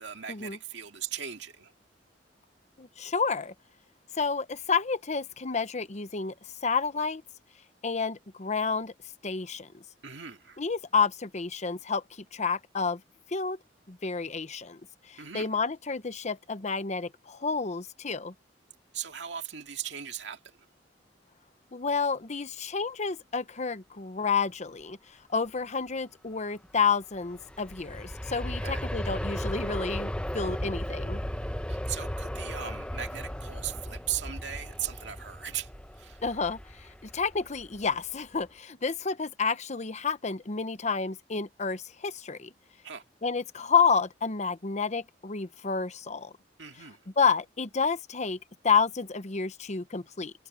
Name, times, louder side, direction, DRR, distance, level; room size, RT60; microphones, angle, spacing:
voice 1, 0.0-1.7 10.0-10.6 15.2-15.6 18.9-20.7 28.6-28.9 31.7-36.2 42.8-43.0 46.6-47.0, right 9 dB, 75° right, 2.2 m, -38 dB
voice 2, 2.8-3.5 4.1-6.3 6.6-7.2 7.8-8.9 9.2-9.8 10.6-13.0 13.3-13.6 13.9-14.8 15.1-18.3 21.7-25.0 25.3-31.2 36.2-42.5 43.2-46.3 47.2-48.4 48.6-50.3, left 5 dB, 40° left, 0.9 m, -30 dB
Aircraft, 27.1-38.0 38.4-38.5, equal, 5° left, 0.9 m, -36 dB
head